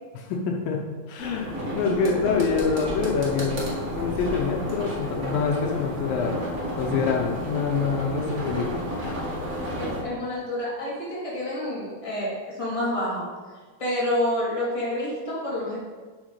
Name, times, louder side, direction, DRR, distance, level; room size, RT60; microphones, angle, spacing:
voice 1, 0.3-3.7 4.0-6.3 6.8-8.7 9.0-9.2, left 5 dB, 80° left, 1 dB, 2.6 m, -26 dB
sound 1, 1.2-10.0, equal, 35° right, 1.5 m, -31 dB
voice 2, 9.8-13.3 13.8-15.8, left 1 dB, 10° left, -7 dB, 2.5 m, -28 dB
11.5 x 5.1 x 4.9 m, 1.4 s
omnidirectional pair, 4.2 m